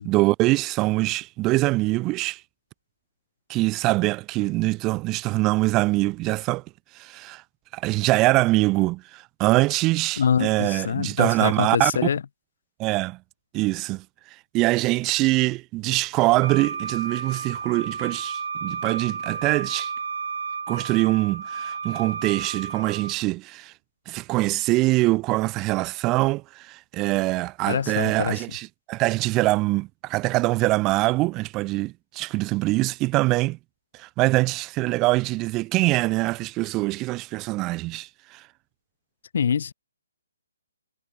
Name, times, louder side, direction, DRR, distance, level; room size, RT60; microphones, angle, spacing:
voice 1, 0.0-2.4 3.5-6.6 6.9-7.4 7.7-11.9 12.8-13.2 13.5-14.0 14.5-19.9 20.7-23.7 24.1-33.6 33.9-38.4, right 20 dB, 20° right, 0.4 m, -23 dB
voice 2, 10.2-12.2 27.7-28.4 39.3-39.7, left 7 dB, 55° left, 0.6 m, -25 dB
Wind instrument woodwind instrument, 16.4-23.2, right 5 dB, 70° right, 5.0 m, -32 dB
hypercardioid pair, 160°, 0 cm